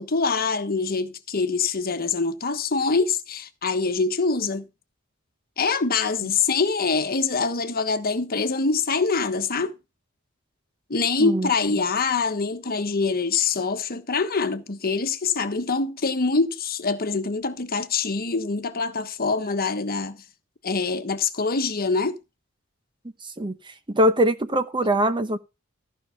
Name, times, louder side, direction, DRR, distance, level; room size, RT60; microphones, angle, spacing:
voice 1, 0.0-4.7 5.6-9.7 10.9-20.2 20.6-22.2, left 4 dB, 45° left, 1.2 m, -24 dB
voice 2, 11.2-11.5 23.4-23.6 23.9-25.4, right 1 dB, 20° right, 0.9 m, -22 dB
15.0 x 5.6 x 5.7 m
head